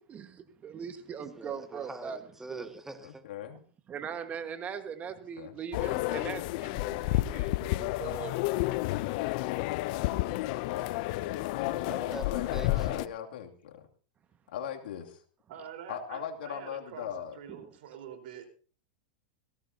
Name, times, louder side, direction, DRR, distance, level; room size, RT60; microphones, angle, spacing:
voice 1, 0.1-2.2 2.5-2.7 3.9-8.6, right 7 dB, 30° right, 1.5 m, -40 dB
voice 2, 1.4-3.2 11.2-13.1, right 2 dB, 10° right, 1.8 m, -45 dB
voice 3, 3.0-3.6 5.4-5.5 10.4-13.8 14.5-15.2 15.9-17.4, left 9 dB, 75° left, 2.6 m, -39 dB
sound 1, 5.7-13.1, left 18 dB, 55° left, 0.6 m, -31 dB
voice 4, 15.5-18.5, right 8 dB, 65° right, 4.2 m, -46 dB
19.0 x 16.5 x 2.8 m
hypercardioid pair, 115°, 5 cm